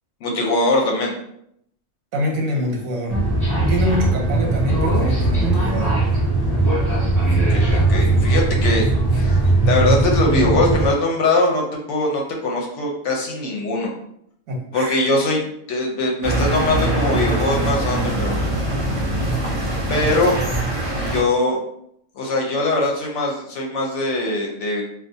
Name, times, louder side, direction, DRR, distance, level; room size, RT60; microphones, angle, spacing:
voice 1, 0.2-1.1 7.5-13.9 14.7-18.4 19.9-20.3 21.0-21.6 22.2-24.8, left 2 dB, 70° left, 0 dB, 0.8 m, -21 dB
voice 2, 2.1-3.1 3.7-6.0 14.5-15.0, left 1 dB, 90° right, -1 dB, 1.1 m, -25 dB
sound 1, 3.1-10.9, right 2 dB, ahead, 1.0 m, -19 dB
sound 2, 16.2-21.2, right 1 dB, 50° right, 0.3 m, -22 dB
2.4 x 2.3 x 2.6 m, 0.74 s
omnidirectional pair, 1.4 m